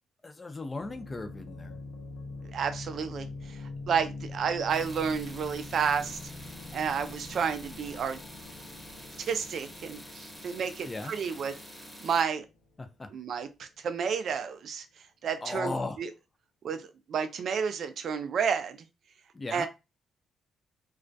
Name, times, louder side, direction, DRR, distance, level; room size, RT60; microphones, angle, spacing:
voice 1, 0.2-1.8 10.8-11.1 12.8-13.1 15.4-16.0 19.3-19.7, left 3 dB, 25° left, 7 dB, 0.5 m, -36 dB
sound 1, 0.8-13.5, left 3 dB, 80° left, 0.6 m, -44 dB
voice 2, 2.5-6.2 6.7-8.2 9.2-11.5 12.0-12.4 13.1-14.9 15.2-16.1 16.6-18.8 19.5-19.7, right 6 dB, 60° right, 9 dB, 0.4 m, -31 dB
sound 2, 4.7-12.2, equal, ahead, 0.9 m, -47 dB
2.3 x 2.1 x 2.6 m, 0.25 s
cardioid pair, 90°, 0 cm